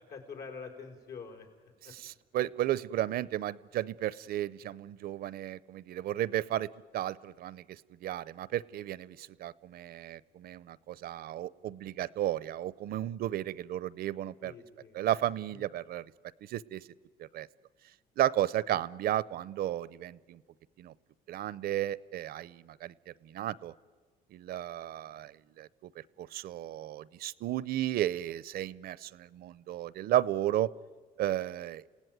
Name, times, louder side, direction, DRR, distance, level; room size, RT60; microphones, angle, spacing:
voice 1, 0.0-1.5 14.4-15.0 15.5-15.6, left 5 dB, 75° left, 3 dB, 4.9 m, -45 dB
voice 2, 1.8-6.7 6.9-14.5 14.9-16.0 16.5-16.8 17.3-17.5 18.2-20.4 20.8-20.9 21.3-22.9 23.2-23.7 24.3-25.3 25.6-25.7 26.2-30.7 31.2-31.8, right 13 dB, 65° right, 21 dB, 0.7 m, -33 dB
29.5 x 17.5 x 9.3 m, 1.5 s
cardioid pair, 110°, 17 cm